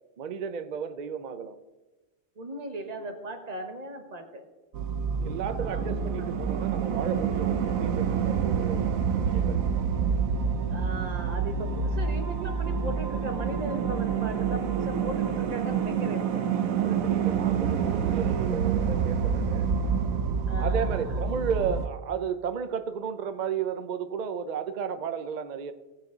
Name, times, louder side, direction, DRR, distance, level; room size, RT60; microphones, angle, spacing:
voice 1, 0.2-1.6 5.2-9.6 16.5-19.7 20.6-25.7, right 7 dB, 55° right, 9 dB, 0.5 m, -33 dB
voice 2, 2.4-4.4 5.6-5.9 10.7-16.5 20.5-21.3, right 1 dB, 30° right, 4 dB, 1.3 m, -37 dB
sound 1, 4.7-21.9, right 7 dB, 85° right, 1.2 m, -27 dB
17.0 x 7.5 x 3.9 m, 1.1 s
omnidirectional pair, 1.4 m